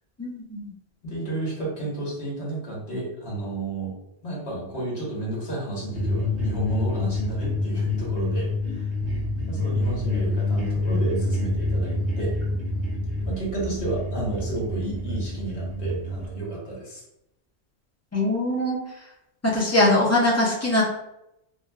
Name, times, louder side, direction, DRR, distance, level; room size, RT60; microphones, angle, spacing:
voice 1, 0.2-0.7 8.7-8.8 18.1-18.8 19.5-20.8, left 1 dB, 20° left, -4 dB, 0.5 m, -22 dB
voice 2, 1.0-3.9 4.2-8.9 9.5-12.3 13.2-17.0, right 2 dB, 70° left, -4 dB, 1.4 m, -31 dB
sound 1, 5.9-16.3, left 2 dB, 85° right, 1.1 m, -27 dB
3.1 x 2.6 x 2.2 m, 0.84 s
omnidirectional pair, 1.1 m